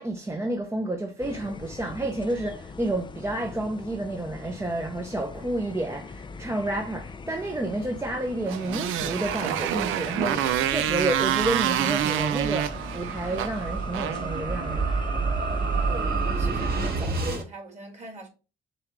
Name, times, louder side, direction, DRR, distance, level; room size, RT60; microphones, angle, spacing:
voice 1, 0.0-14.9, right 1 dB, 15° right, 0.7 m, -30 dB
sound 1, 1.2-16.7, left 4 dB, 25° left, 0.4 m, -42 dB
Motorcycle, 8.4-14.9, right 11 dB, 80° right, 0.5 m, -28 dB
sound 2, 10.0-17.4, right 4 dB, 50° right, 1.2 m, -30 dB
voice 2, 15.9-18.3, right 3 dB, 35° right, 2.2 m, -40 dB
6.8 x 2.4 x 3.0 m
cardioid pair, 90°, 20 cm